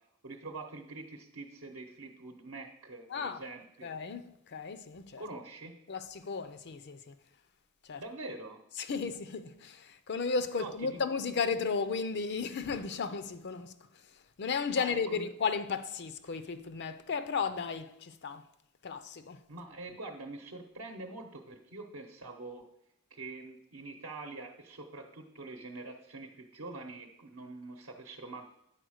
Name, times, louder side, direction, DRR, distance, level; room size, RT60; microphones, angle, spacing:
voice 1, 0.2-3.9 5.2-5.7 8.0-8.6 10.6-11.0 14.8-15.3 19.5-22.6 23.1-28.5, right 2 dB, 65° right, 0.9 m, -45 dB
voice 2, 3.1-3.4 3.8-5.2 5.9-7.2 7.8-8.0 8.8-18.5 18.8-19.4, left 5 dB, 50° left, 0.5 m, -34 dB
9.2 x 4.3 x 6.3 m
head